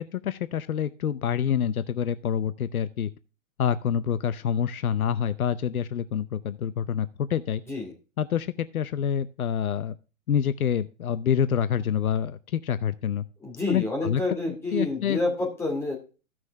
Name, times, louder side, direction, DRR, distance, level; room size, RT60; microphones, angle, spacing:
voice 1, 0.0-3.1 3.6-7.6 8.2-10.0 10.3-13.2 13.7-14.2 14.5-15.2, left 8 dB, 75° left, 13 dB, 0.8 m, -27 dB
voice 2, 13.4-16.0, left 2 dB, 5° left, 0 dB, 2.4 m, -28 dB
15.0 x 6.2 x 3.4 m, 0.33 s
hypercardioid pair, 150°, 43 cm